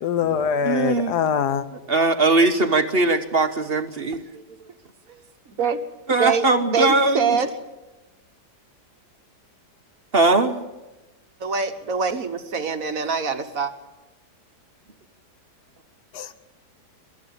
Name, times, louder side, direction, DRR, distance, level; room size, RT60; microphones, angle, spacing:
voice 1, 0.0-1.6 16.1-16.3, left 7 dB, 75° left, 1.5 m, -23 dB
voice 2, 0.6-1.2 1.7-4.2 6.1-7.4 10.1-10.6, right 3 dB, 40° right, 1.2 m, -20 dB
voice 3, 4.3-4.7 5.1-5.2 5.6-5.8 6.2-7.5 11.4-13.7, right 5 dB, 55° right, 1.6 m, -25 dB
24.0 x 13.0 x 8.7 m
omnidirectional pair, 1.8 m